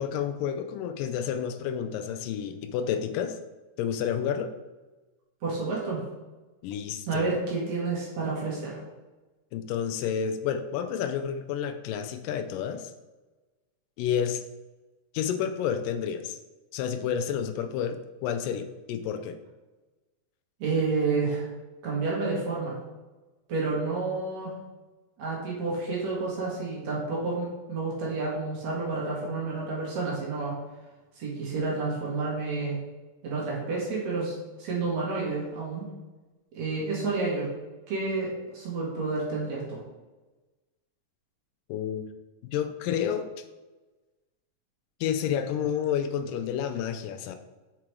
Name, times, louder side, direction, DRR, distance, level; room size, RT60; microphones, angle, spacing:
voice 1, 0.0-3.3 3.8-4.5 6.6-7.4 9.5-12.9 14.0-14.4 15.1-16.4 16.7-19.4 41.7-42.1 42.4-43.3 45.0-47.4, left 8 dB, 85° left, 8 dB, 2.2 m, -30 dB
voice 2, 5.4-6.0 7.1-8.8 20.6-21.5 21.8-22.7 23.5-24.5 25.2-30.6 31.2-32.8 33.2-35.9 36.5-37.5 37.9-39.8, right 3 dB, 60° right, -4 dB, 2.7 m, -30 dB
6.1 x 4.9 x 4.7 m, 1.2 s
omnidirectional pair, 3.9 m